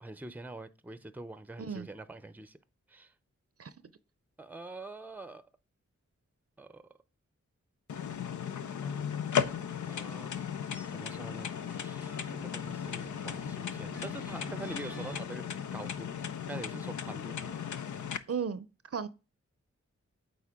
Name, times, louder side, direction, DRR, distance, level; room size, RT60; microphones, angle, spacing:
voice 1, 0.0-2.6 2.9-3.1 4.4-5.4 6.6-6.8 8.8-9.0 9.9-10.3 10.9-15.4 15.7-16.1 16.5-17.6, right 2 dB, 5° right, 0.6 m, -45 dB
sound 1, 7.9-18.2, left 8 dB, 85° left, 0.5 m, -36 dB
sound 2, 9.3-15.2, right 1 dB, 55° left, 2.1 m, -49 dB
voice 2, 18.3-18.7 18.9-19.1, right 6 dB, 55° right, 0.6 m, -34 dB
8.4 x 4.0 x 3.6 m
cardioid pair, 50°, 29 cm